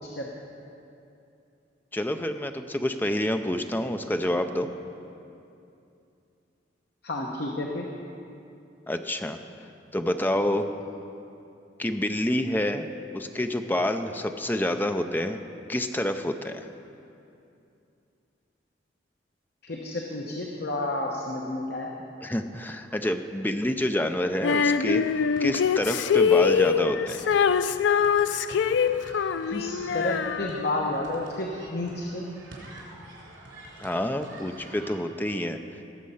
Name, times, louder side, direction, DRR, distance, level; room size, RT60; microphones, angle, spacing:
voice 1, 1.9-4.7 8.9-9.4 9.9-10.7 11.8-12.9 13.1-15.4 15.7-16.7 22.2-25.0 25.4-27.2 33.8-35.6, left 1 dB, 10° left, 7 dB, 0.5 m, -28 dB
voice 2, 7.0-7.9 19.6-21.9 29.5-32.3, left 2 dB, 60° left, -1 dB, 1.0 m, -31 dB
Female singing, 24.4-30.9, left 6 dB, 75° left, 0.3 m, -24 dB
sound 1, 24.9-35.0, right 1 dB, 90° right, 3.4 m, -47 dB
18.0 x 7.5 x 5.6 m, 2.7 s
head